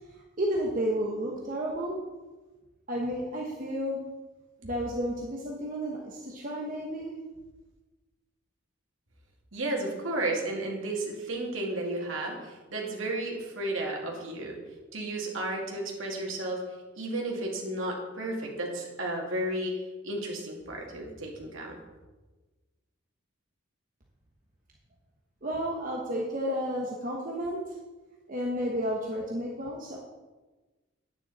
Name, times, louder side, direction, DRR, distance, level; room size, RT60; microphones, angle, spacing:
voice 1, 0.4-2.0 2.9-4.0 4.6-7.1 25.4-27.7 28.3-30.0, equal, 40° right, -2 dB, 1.1 m, -32 dB
voice 2, 9.5-14.6 14.9-16.6 17.0-19.8 20.0-21.8, right 1 dB, 75° right, -1 dB, 2.3 m, -33 dB
9.6 x 9.4 x 4.2 m, 1.2 s
head